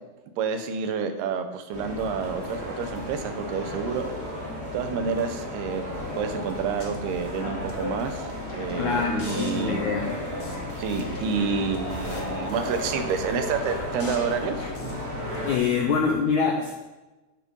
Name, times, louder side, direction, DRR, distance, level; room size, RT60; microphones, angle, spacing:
voice 1, 0.4-4.0 4.7-5.8 6.2-9.9 10.8-14.7, right 6 dB, 80° right, 7 dB, 2.9 m, -29 dB
sound 1, 1.7-15.6, left 1 dB, 20° right, 2.1 m, -34 dB
sound 2, 6.5-16.1, left 2 dB, 65° left, 1.0 m, -41 dB
voice 2, 8.8-10.1 15.5-16.7, left 5 dB, 80° left, 2 dB, 1.7 m, -25 dB
11.5 x 7.4 x 5.5 m, 1.1 s
omnidirectional pair, 4.6 m